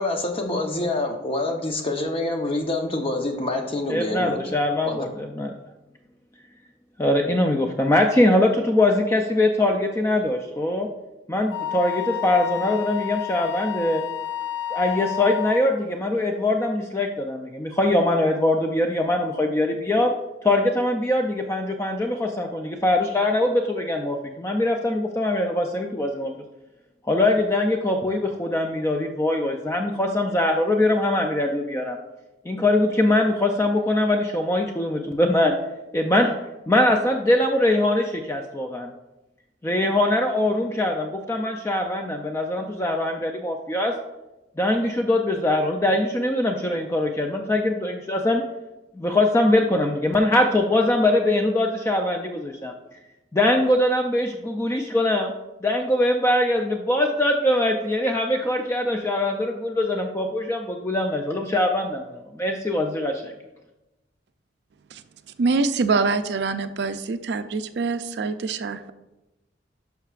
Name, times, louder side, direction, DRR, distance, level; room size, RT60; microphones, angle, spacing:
voice 1, 0.0-4.4 4.8-5.1, left 2 dB, 30° left, 3 dB, 0.8 m, -26 dB
voice 2, 3.9-5.5 7.0-10.9 11.3-14.0 14.7-20.1 20.4-26.3 27.0-32.0 32.5-35.5 35.9-36.3 36.7-38.9 39.6-43.9 44.6-48.4 49.0-52.7 53.3-55.3 55.6-63.3, left 1 dB, 15° left, 3 dB, 0.4 m, -22 dB
Wind instrument woodwind instrument, 11.5-15.7, left 11 dB, 80° left, 0.5 m, -31 dB
voice 3, 65.4-68.9, right 4 dB, 65° right, 11 dB, 0.4 m, -24 dB
11.5 x 5.7 x 2.4 m, 1.0 s
head